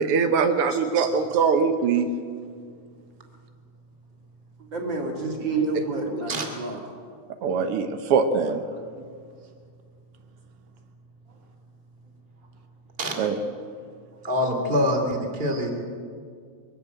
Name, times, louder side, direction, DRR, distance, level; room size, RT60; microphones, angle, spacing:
voice 1, 0.0-2.1 7.4-8.6 13.2-13.4, right 5 dB, 85° right, 7 dB, 1.2 m, -22 dB
voice 2, 0.7-1.1 6.3-6.5 13.0-13.1 14.2-15.7, equal, 20° right, 2 dB, 2.5 m, -25 dB
voice 3, 4.7-6.8 9.0-9.1, right 3 dB, 35° right, 0 dB, 3.4 m, -28 dB
23.0 x 13.0 x 8.8 m, 2.1 s
omnidirectional pair, 3.9 m